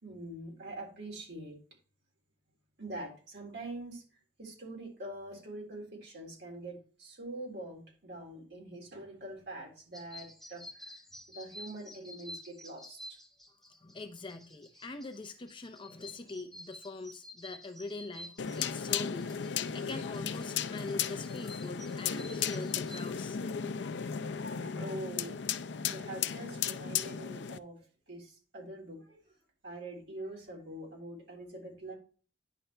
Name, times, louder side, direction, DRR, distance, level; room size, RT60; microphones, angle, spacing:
voice 1, 0.0-1.6 2.8-4.0 4.4-11.0 11.3-13.2 21.1-21.2 24.2-25.4 25.9-27.8 28.1-29.2 29.6-31.9, right 1 dB, 60° right, 3.6 m, -44 dB
sound 1, 9.9-23.1, left 1 dB, ahead, 1.0 m, -51 dB
voice 2, 13.8-23.4, left 3 dB, 25° left, 0.6 m, -43 dB
sound 2, 18.4-27.6, left 7 dB, 70° left, 0.5 m, -35 dB
10.0 x 5.6 x 3.3 m
head